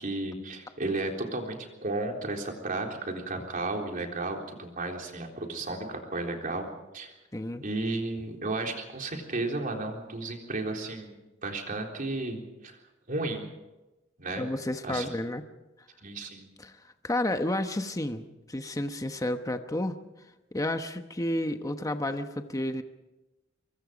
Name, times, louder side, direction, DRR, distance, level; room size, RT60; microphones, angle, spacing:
voice 1, 0.0-1.6 1.8-6.7 6.9-7.1 7.6-11.2 11.4-12.8 13.1-13.5 14.2-14.5 14.8-15.1 16.0-16.5, right 2 dB, 45° right, 2 dB, 3.8 m, -33 dB
voice 2, 7.3-7.6 14.3-15.4 16.6-20.0 20.5-22.8, left 1 dB, 15° left, 7 dB, 1.0 m, -31 dB
25.0 x 23.5 x 5.2 m, 1.0 s
head